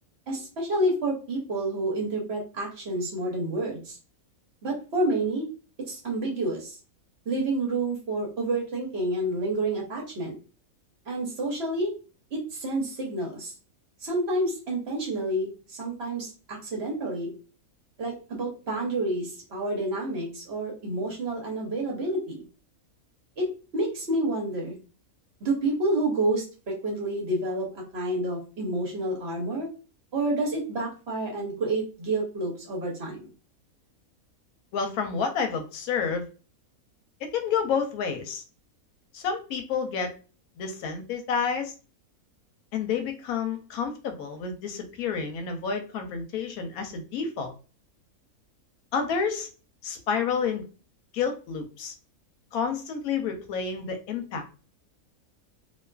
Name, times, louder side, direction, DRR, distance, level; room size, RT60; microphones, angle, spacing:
voice 1, 0.3-4.0 4.6-5.5 5.9-6.8 7.3-10.4 11.1-11.9 12.3-13.5 14.0-17.3 18.0-22.4 23.4-23.5 23.7-24.8 25.4-29.7 30.1-33.3, right 2 dB, 55° right, -1 dB, 0.9 m, -29 dB
voice 2, 34.7-36.3 37.2-38.4 39.1-40.1 40.6-41.7 42.7-47.5 48.9-49.5 49.8-50.7 51.1-51.9 52.5-54.5, left 6 dB, 85° left, 5 dB, 1.1 m, -29 dB
2.5 x 2.4 x 2.2 m, 0.35 s
omnidirectional pair, 1.5 m